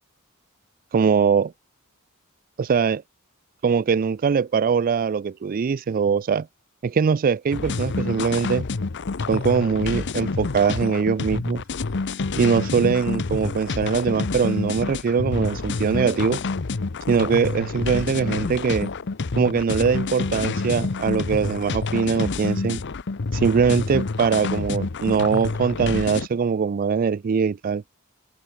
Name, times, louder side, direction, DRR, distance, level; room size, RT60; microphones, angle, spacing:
voice 1, 0.9-1.5 2.6-3.0 3.6-6.5 6.8-8.6 9.3-11.6 12.4-16.4 17.1-18.9 19.4-22.8 23.3-27.8, right 6 dB, 40° right, 0.4 m, -22 dB
sound 1, 7.5-26.3, left 3 dB, 55° left, 0.8 m, -28 dB
open air
head